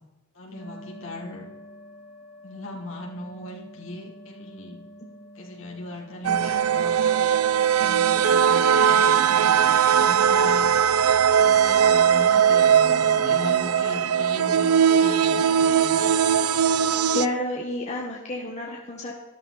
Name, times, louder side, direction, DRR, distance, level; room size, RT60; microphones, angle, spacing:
voice 1, 0.3-1.5 2.4-4.8 5.3-7.2 7.8-10.7 11.4-16.1, left 1 dB, 65° left, -1 dB, 3.0 m, -38 dB
sound 1, 0.5-17.8, equal, 10° right, 3.3 m, -50 dB
sound 2, 6.2-17.3, right 8 dB, 90° right, 0.5 m, -19 dB
voice 2, 17.1-19.1, left 1 dB, 30° left, -1 dB, 1.7 m, -29 dB
13.5 x 12.5 x 4.2 m, 1.1 s
head